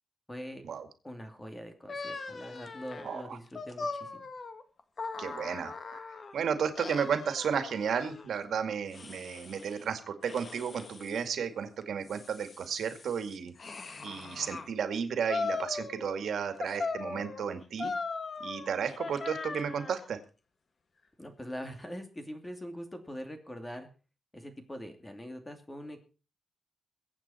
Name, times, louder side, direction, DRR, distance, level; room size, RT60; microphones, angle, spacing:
voice 1, 0.3-0.6 1.0-4.3 21.2-23.9 24.3-26.0, equal, 15° left, 6 dB, 2.7 m, -43 dB
sound 1, 1.9-6.3 6.8-8.3 8.9-9.8 10.2-11.2 11.8-14.7 15.3-16.3 16.6-20.0, left 4 dB, 45° left, 1.6 m, -39 dB
voice 2, 3.0-3.4 5.2-6.1 6.3-13.5 14.0-17.9 18.4-20.2, right 7 dB, 85° right, 8 dB, 2.2 m, -33 dB
23.0 x 8.8 x 4.4 m, 0.35 s
wide cardioid pair, 140°, 0 cm